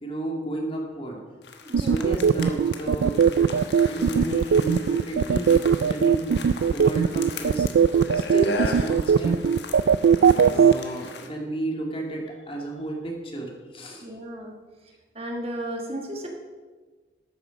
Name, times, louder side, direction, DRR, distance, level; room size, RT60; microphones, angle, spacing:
voice 1, 0.0-1.2 1.7-3.6 3.9-6.4 6.7-9.4 10.4-14.1, right 1 dB, 30° left, 0 dB, 2.1 m, -32 dB
sound 1, 1.4-11.3, left 3 dB, 70° left, 1.3 m, -38 dB
voice 2, 1.6-2.2 10.3-10.6 14.0-14.5 15.1-16.3, right 1 dB, 35° right, 1 dB, 1.4 m, -34 dB
sound 2, 1.7-10.7, right 7 dB, 80° right, 0.3 m, -19 dB
13.0 x 8.8 x 5.1 m, 1.4 s
head